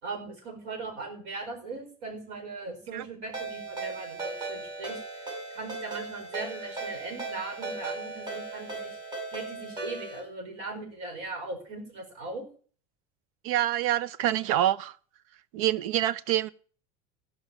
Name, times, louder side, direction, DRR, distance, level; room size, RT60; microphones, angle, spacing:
voice 1, 0.0-5.0 5.5-9.0 9.3-12.5, right 3 dB, 65° right, 5.0 m, -39 dB
Ringtone, 3.3-10.2, right 3 dB, 25° right, 5.5 m, -37 dB
voice 2, 13.4-14.9 15.5-16.5, right 13 dB, 85° right, 0.7 m, -26 dB
15.5 x 5.5 x 7.2 m
cardioid pair, 160°, 17 cm